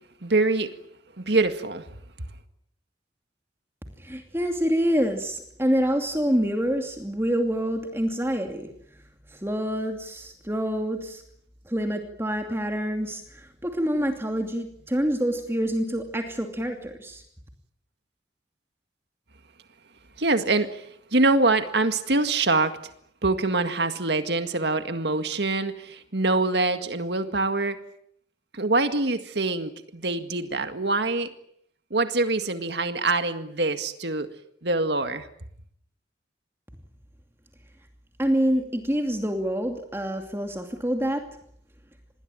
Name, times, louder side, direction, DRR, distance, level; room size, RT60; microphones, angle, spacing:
voice 1, 0.2-0.7 1.2-1.9 20.2-22.8 23.2-27.8 28.5-31.3 31.9-34.3 34.6-35.3, right 2 dB, 70° right, 1.9 m, -24 dB
voice 2, 4.0-8.7 9.3-11.2 11.7-17.2 38.2-41.3, equal, 15° right, 2.6 m, -26 dB
27.5 x 21.0 x 9.1 m
head